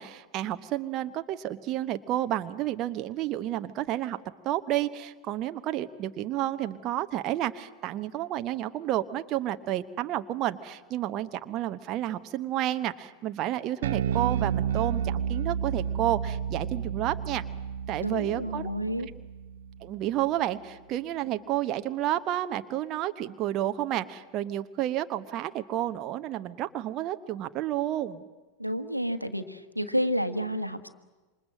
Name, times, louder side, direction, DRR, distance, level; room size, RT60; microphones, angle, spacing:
voice 1, 0.0-4.2 4.4-17.4 17.9-18.7 19.8-28.2, right 13 dB, 35° right, 9 dB, 1.0 m, -30 dB
Bass guitar, 13.8-20.3, right 8 dB, 60° right, 0.7 m, -31 dB
voice 2, 18.0-19.1 28.6-30.9, equal, 90° right, 9 dB, 1.4 m, -30 dB
27.0 x 25.5 x 7.6 m, 1.3 s
figure-of-eight pair, 90°, 0 cm